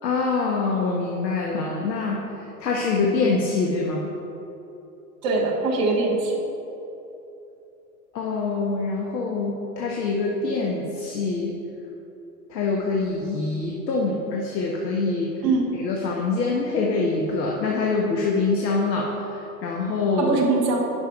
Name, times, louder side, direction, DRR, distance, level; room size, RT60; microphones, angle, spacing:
voice 1, 0.0-2.2 2.6-4.1 8.1-11.5 12.5-15.3 15.7-20.3, left 3 dB, 85° left, -1 dB, 1.3 m, -25 dB
voice 2, 5.2-6.3 15.4-15.6 20.2-20.9, right 3 dB, 10° right, -2 dB, 0.4 m, -22 dB
10.0 x 5.8 x 4.7 m, 2.9 s
hypercardioid pair, 145°, 49 cm